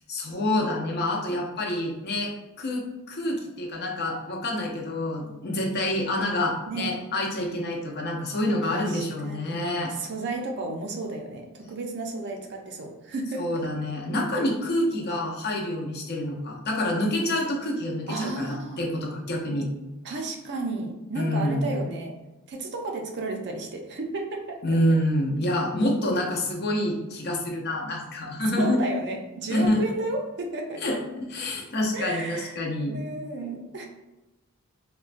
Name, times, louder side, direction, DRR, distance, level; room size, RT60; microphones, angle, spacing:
voice 1, 0.1-2.3 2.6-9.9 13.4-19.7 21.1-21.8 24.6-28.8 29.5-29.8 30.8-33.0, left 1 dB, 50° left, 0 dB, 0.6 m, -27 dB
voice 2, 8.6-13.4 18.1-18.8 20.0-22.1 22.5-24.6 28.6-30.8 31.9-32.6 32.9-33.9, right 2 dB, 50° right, 2 dB, 0.4 m, -33 dB
3.7 x 2.2 x 2.4 m, 0.99 s
head